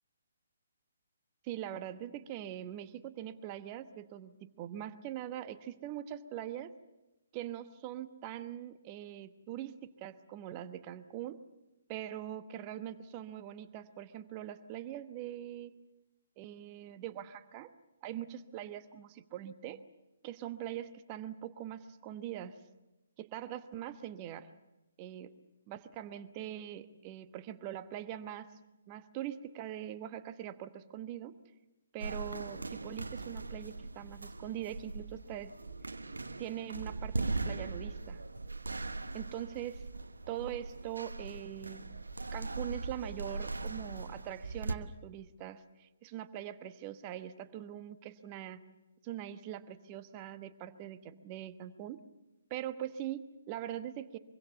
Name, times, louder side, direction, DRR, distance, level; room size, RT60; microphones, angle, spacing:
voice 1, 1.4-6.7 7.3-11.4 11.9-15.7 16.4-17.7 18.0-19.8 20.2-22.6 23.2-24.5 25.0-25.3 25.7-28.5 28.9-31.3 31.9-35.5 36.4-38.2 39.1-39.8 40.3-41.9 42.3-48.6 49.0-52.0 52.5-54.2, right 11 dB, 25° right, 11 dB, 1.1 m, -42 dB
sound 1, 32.0-44.7, right 3 dB, 70° right, 1.1 m, -40 dB
24.0 x 24.0 x 7.0 m, 1.0 s
figure-of-eight pair, 135°, 0 cm